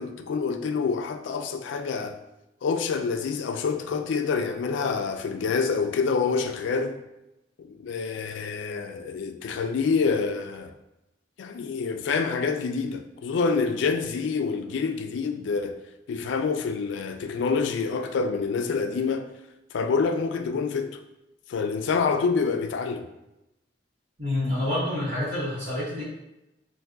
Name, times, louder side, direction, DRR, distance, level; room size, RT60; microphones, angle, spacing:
voice 1, 0.0-2.2 2.6-7.0 7.6-10.7 11.4-15.8 16.1-19.3 19.7-21.0 21.5-23.1, left 5 dB, 85° left, 0.3 m, -27 dB
voice 2, 24.2-26.0, left 1 dB, 65° right, 1.3 m, -27 dB
3.8 x 2.6 x 2.3 m
head